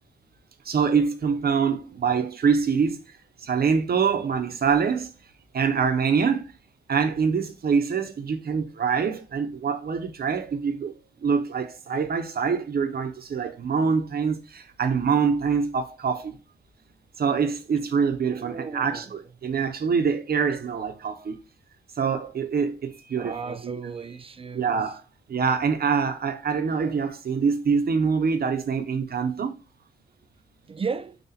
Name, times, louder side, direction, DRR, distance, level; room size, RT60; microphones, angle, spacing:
voice 1, 0.7-3.0 3.5-5.1 5.5-6.4 6.9-10.9 11.2-14.4 14.8-16.3 17.2-21.4 22.0-23.9 24.5-25.0 25.3-29.5, right 6 dB, 50° right, 0.8 m, -25 dB
voice 2, 18.3-19.2 23.2-24.8 30.7-31.2, right 5 dB, 30° right, 0.4 m, -34 dB
4.0 x 2.4 x 4.1 m
cardioid pair, 80°, 20 cm